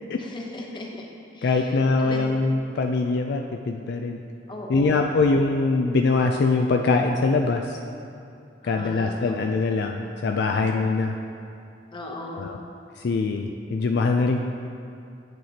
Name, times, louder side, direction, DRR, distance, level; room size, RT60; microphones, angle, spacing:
voice 1, 0.2-1.1 1.3-2.3 4.5-5.1 8.6-9.4 11.9-12.6, left 1 dB, 25° left, -1 dB, 0.9 m, -37 dB
voice 2, 1.4-4.2 4.7-7.8 8.6-11.2 12.3-12.6 13.0-14.4, left 3 dB, 60° left, 3 dB, 0.4 m, -23 dB
9.1 x 7.5 x 2.8 m, 2.5 s
head